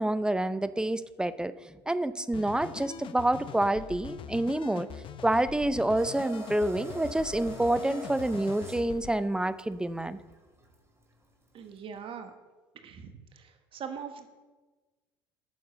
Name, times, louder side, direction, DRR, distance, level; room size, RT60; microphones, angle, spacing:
voice 1, 0.0-1.5 1.9-4.9 5.2-10.2, right 1 dB, 5° right, 14 dB, 0.6 m, -28 dB
sound 1, 2.3-9.2, left 8 dB, 45° left, 0.7 m, -43 dB
sound 2, 5.9-12.0, right 2 dB, 20° right, 2.6 m, -45 dB
voice 2, 11.5-12.3 12.8-14.3, right 7 dB, 45° right, 8 dB, 1.1 m, -42 dB
9.4 x 6.7 x 6.7 m, 1.2 s
hypercardioid pair, 70°, 12 cm